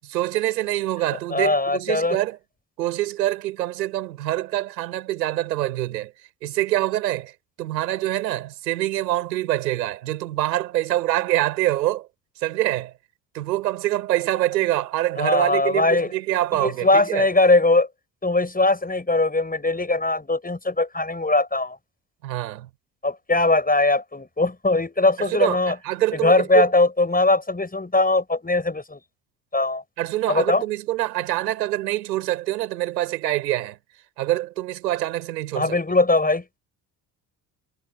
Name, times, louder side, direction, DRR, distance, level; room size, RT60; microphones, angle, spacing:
voice 1, 0.0-2.4 2.8-6.1 6.4-7.3 7.6-12.1 12.4-12.9 13.3-17.3 22.2-22.7 25.2-26.7 30.0-33.8 34.2-35.8, right 15 dB, 85° right, 4.8 m, -25 dB
voice 2, 1.3-2.2 15.2-16.1 16.5-17.9 18.2-21.8 23.0-25.8 26.1-29.0 29.5-29.8 30.3-30.6 35.5-36.4, left 2 dB, 15° left, 6.2 m, -20 dB
hypercardioid pair, 45°, 49 cm